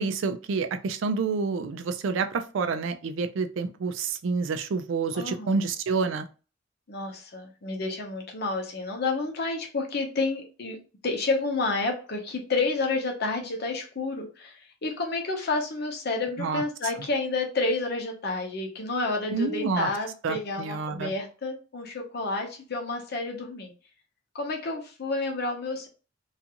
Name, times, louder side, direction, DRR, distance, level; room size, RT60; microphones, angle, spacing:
voice 1, 0.0-6.3 16.4-16.6 19.3-19.9 20.2-21.1, right 4 dB, 75° right, 8 dB, 0.4 m, -28 dB
voice 2, 5.1-5.7 6.9-10.8 11.0-23.7 24.3-25.9, left 3 dB, 55° left, 2 dB, 0.7 m, -30 dB
2.5 x 2.3 x 2.8 m, 0.34 s
head